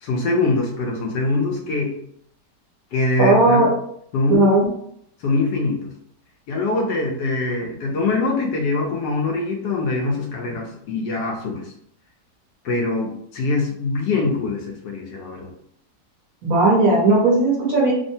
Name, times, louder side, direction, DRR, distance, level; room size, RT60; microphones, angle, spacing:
voice 1, 0.0-1.9 2.9-3.7 4.1-4.7 5.2-5.8 6.5-11.7 12.6-15.5, left 3 dB, 80° left, 1 dB, 1.3 m, -23 dB
voice 2, 3.2-3.7 4.3-4.6 16.4-17.9, right 2 dB, 55° right, -4 dB, 1.3 m, -16 dB
3.4 x 2.1 x 2.6 m, 0.69 s
omnidirectional pair, 1.9 m